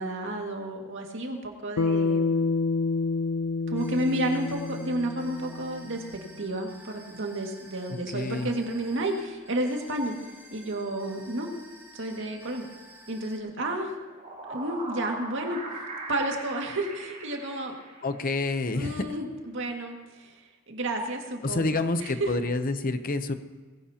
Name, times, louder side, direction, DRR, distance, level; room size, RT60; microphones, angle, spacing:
voice 1, 0.0-2.7 3.7-6.0 6.4-10.2 10.5-11.5 11.9-12.7 13.1-13.9 14.5-15.6 16.1-17.7 18.7-20.4 20.7-22.3, right 1 dB, 65° right, 1 dB, 2.0 m, -31 dB
Bass guitar, 1.8-6.2, left 4 dB, 75° left, 0.5 m, -28 dB
sound 1, 3.7-13.4, right 1 dB, 10° right, 2.5 m, -51 dB
voice 2, 8.1-8.5 18.0-19.1 21.4-23.3, left 2 dB, 45° left, 10 dB, 0.7 m, -28 dB
sound 2, 14.0-18.4, right 2 dB, 40° right, 3.0 m, -40 dB
20.0 x 16.0 x 2.9 m, 1.3 s
head